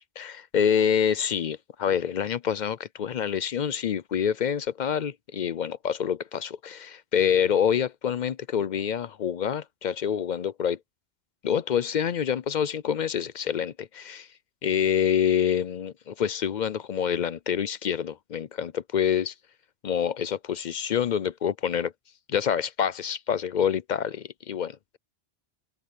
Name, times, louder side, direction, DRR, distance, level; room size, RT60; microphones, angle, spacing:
voice 1, 0.2-10.8 11.4-14.3 14.6-19.3 19.8-21.9 22.3-25.0, left 8 dB, 55° left, 0.6 m, -27 dB
omnidirectional pair, 1.1 m